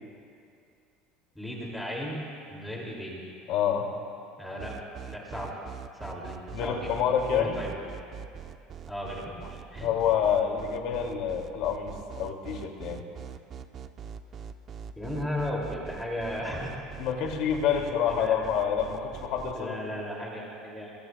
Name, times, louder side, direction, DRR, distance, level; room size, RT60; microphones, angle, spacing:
voice 1, 1.3-3.2 4.4-5.6 6.0-6.9 7.3-7.8 8.9-9.9 15.0-16.7 17.7-18.5 19.5-20.9, left 1 dB, 5° left, -3 dB, 2.5 m, -36 dB
voice 2, 3.5-3.9 6.5-7.6 9.8-13.0 17.0-19.7, left 8 dB, 60° left, 2 dB, 2.3 m, -27 dB
sound 1, 4.6-19.5, right 8 dB, 35° right, 0.7 m, -42 dB
28.5 x 22.0 x 2.3 m, 2.4 s
cardioid pair, 155°, 0 cm